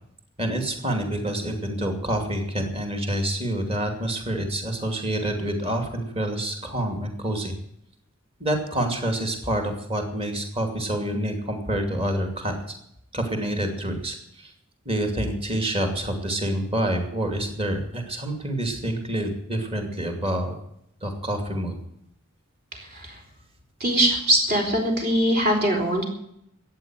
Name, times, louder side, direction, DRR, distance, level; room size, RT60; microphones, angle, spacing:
voice 1, 0.4-7.5 8.4-12.7 13.1-14.5 14.8-20.6 21.0-21.8, right 1 dB, 25° right, 5 dB, 2.6 m, -27 dB
voice 2, 22.7-23.2 23.8-26.0, right 1 dB, 45° right, 2 dB, 4.1 m, -22 dB
14.0 x 9.2 x 9.2 m, 0.75 s
head